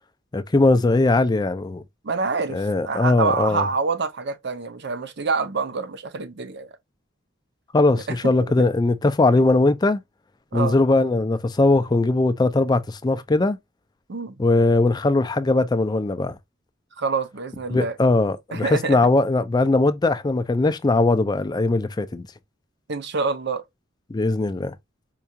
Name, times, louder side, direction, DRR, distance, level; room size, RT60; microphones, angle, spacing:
voice 1, 0.3-1.8 2.5-3.6 7.7-10.0 10.5-13.6 14.4-16.4 17.7-22.3 24.1-24.7, left 2 dB, 20° left, 0.3 m, -20 dB
voice 2, 2.0-6.7 8.1-8.2 8.6-8.7 10.5-10.8 14.1-14.4 17.0-18.0 18.5-19.0 22.9-23.6, right 4 dB, 55° right, 0.6 m, -26 dB
4.6 x 2.3 x 2.7 m
head